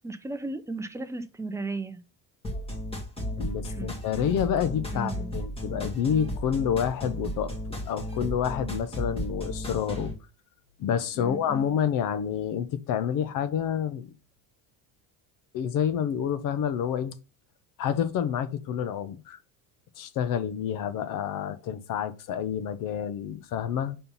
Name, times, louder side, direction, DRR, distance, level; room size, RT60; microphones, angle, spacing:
voice 1, 0.0-2.0 3.2-3.4 3.7-3.9 4.9-5.4 11.1-11.7, right 3 dB, 5° right, 0.5 m, -35 dB
sound 1, 2.4-10.1, equal, 15° left, 2.0 m, -34 dB
voice 2, 3.4-10.1 10.8-14.1 15.5-17.2 17.8-19.4 20.0-24.0, left 8 dB, 55° left, 0.8 m, -28 dB
5.6 x 4.3 x 5.4 m
cardioid pair, 140°, 40 cm